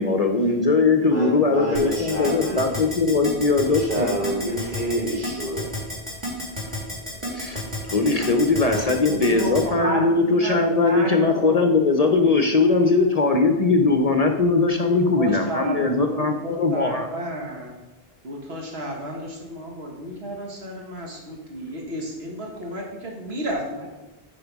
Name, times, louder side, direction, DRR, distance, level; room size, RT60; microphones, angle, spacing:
voice 1, 0.0-4.1 7.3-17.1, left 3 dB, 45° left, 5 dB, 0.7 m, -20 dB
voice 2, 1.0-2.8 3.7-5.7, right 1 dB, 55° right, -7 dB, 3.2 m, -28 dB
Keyboard (musical), 1.7-9.6, left 1 dB, 30° right, 2.7 m, -30 dB
voice 3, 8.7-11.7 14.8-15.8 16.1-17.8 18.2-23.9, equal, 80° right, 0 dB, 1.7 m, -32 dB
9.0 x 5.0 x 4.6 m, 1.0 s
omnidirectional pair, 1.0 m